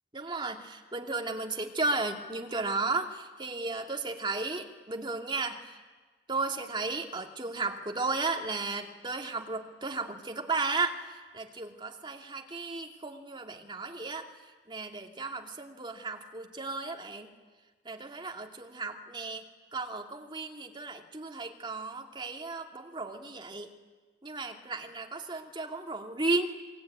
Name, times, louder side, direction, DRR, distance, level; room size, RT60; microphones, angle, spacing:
voice 1, 0.1-5.8 6.3-10.9 11.3-14.3 14.7-17.3 17.8-19.4 19.7-23.7 24.2-26.5, right 3 dB, 25° right, 2 dB, 2.5 m, -34 dB
29.0 x 22.0 x 9.4 m, 1.3 s
head